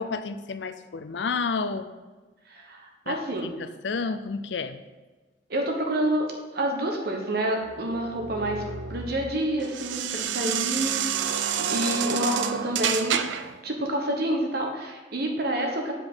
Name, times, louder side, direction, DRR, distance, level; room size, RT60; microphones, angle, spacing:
voice 1, 0.0-1.9 3.1-4.8, left 4 dB, 75° left, 11 dB, 0.5 m, -31 dB
voice 2, 2.5-3.5 5.5-6.3 6.5-8.6 8.9-11.0 11.7-13.2 13.6-15.9, right 1 dB, 60° right, 2 dB, 1.2 m, -28 dB
sound 1, 7.7-13.6, right 8 dB, 85° right, 0.5 m, -29 dB
7.7 x 5.0 x 5.6 m, 1.2 s
head